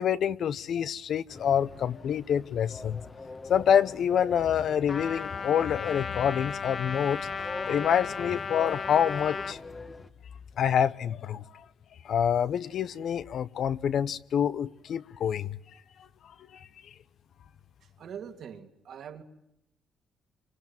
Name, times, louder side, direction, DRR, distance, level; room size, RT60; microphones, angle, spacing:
voice 1, 0.0-3.1 3.5-7.3 7.7-9.6 10.6-11.6 12.0-15.6 16.5-16.7, left 8 dB, 65° left, 0.9 m, -27 dB
sound 1, 1.3-10.1, left 3 dB, 30° left, 1.5 m, -44 dB
Trumpet, 4.9-9.6, left 5 dB, 45° left, 1.4 m, -35 dB
voice 2, 17.8-19.2, right 8 dB, 65° right, 2.8 m, -43 dB
26.5 x 25.5 x 7.4 m
cardioid pair, 90°, 0 cm